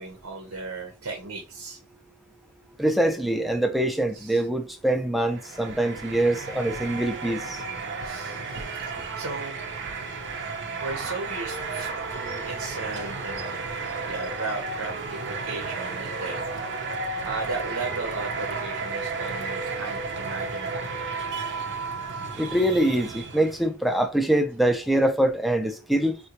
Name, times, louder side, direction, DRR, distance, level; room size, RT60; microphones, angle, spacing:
voice 1, 0.0-1.8 4.1-4.4 8.0-9.6 10.8-13.5 14.1-16.4 17.2-20.9, right 3 dB, 85° right, 0.8 m, -36 dB
voice 2, 2.8-7.6 22.4-26.1, right 1 dB, ahead, 0.3 m, -24 dB
sound 1, 5.2-23.7, right 4 dB, 55° right, 0.5 m, -33 dB
3.7 x 2.2 x 2.8 m
head